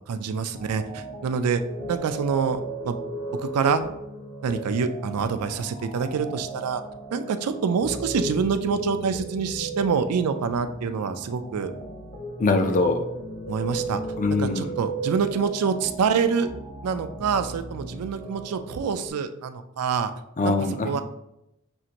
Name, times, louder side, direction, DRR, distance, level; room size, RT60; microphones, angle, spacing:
voice 1, 0.1-1.6 1.9-3.0 3.4-3.8 4.4-6.8 7.1-11.7 13.5-14.0 14.4-16.5 16.8-20.1 20.4-20.5 20.8-21.0, right 6 dB, 90° right, 9 dB, 0.4 m, -26 dB
sound 1, 0.5-19.1, right 2 dB, 55° left, 1.3 m, -36 dB
voice 2, 12.4-13.0 14.2-14.7 20.4-21.0, left 3 dB, 35° left, 6 dB, 0.4 m, -23 dB
6.2 x 2.5 x 2.9 m, 0.83 s
head